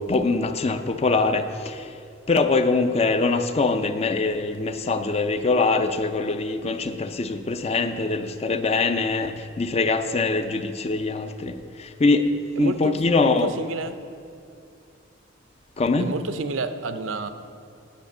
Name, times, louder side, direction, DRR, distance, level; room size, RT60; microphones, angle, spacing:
voice 1, 0.0-2.0 2.3-13.5 15.8-16.1, left 3 dB, 30° left, 9 dB, 0.5 m, -23 dB
voice 2, 12.6-12.9 13.3-13.9 16.0-17.3, right 3 dB, 70° right, 9 dB, 0.6 m, -29 dB
10.5 x 5.7 x 7.2 m, 2.5 s
head